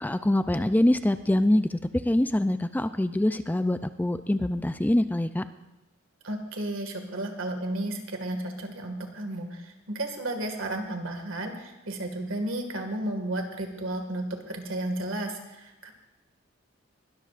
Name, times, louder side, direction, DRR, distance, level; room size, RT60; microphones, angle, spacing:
voice 1, 0.0-1.8 2.1-5.4, left 1 dB, 10° left, 11 dB, 0.4 m, -24 dB
voice 2, 6.2-15.9, right 1 dB, 85° right, 4 dB, 1.9 m, -33 dB
20.5 x 13.0 x 2.5 m, 1.0 s
head